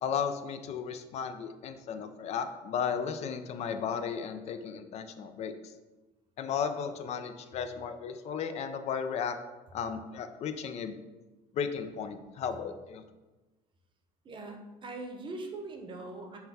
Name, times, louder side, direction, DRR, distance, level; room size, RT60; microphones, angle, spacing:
voice 1, 0.0-5.7 6.4-9.4 9.7-11.0 11.5-13.0, left 7 dB, 45° left, 8 dB, 0.4 m, -35 dB
voice 2, 14.2-16.4, right 2 dB, 30° right, 3 dB, 0.8 m, -41 dB
5.6 x 2.2 x 4.1 m, 1.2 s
supercardioid pair, 105°, 15 cm